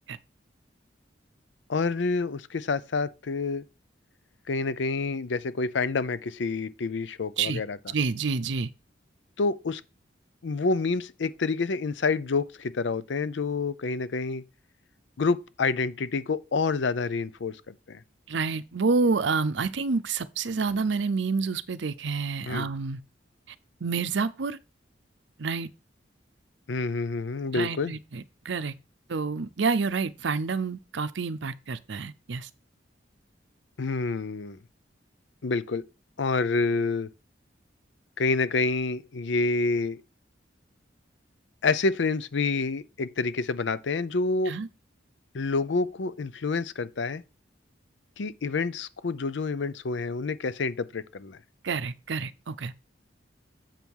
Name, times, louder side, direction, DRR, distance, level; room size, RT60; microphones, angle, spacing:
voice 1, 1.7-3.6 4.5-7.9 9.4-9.8 10.4-14.4 15.2-18.0 22.5-22.7 26.7-28.0 33.8-34.6 35.4-35.8 36.2-37.1 38.2-40.0 41.6-44.5 45.3-47.2 48.2-51.4, left 4 dB, 75° left, 0.5 m, -28 dB
voice 2, 7.9-8.7 18.3-23.0 23.8-24.6 25.4-25.7 27.5-28.7 29.1-32.5 44.5-44.7 51.6-52.7, right 4 dB, 70° right, 0.6 m, -28 dB
7.4 x 5.4 x 4.6 m
head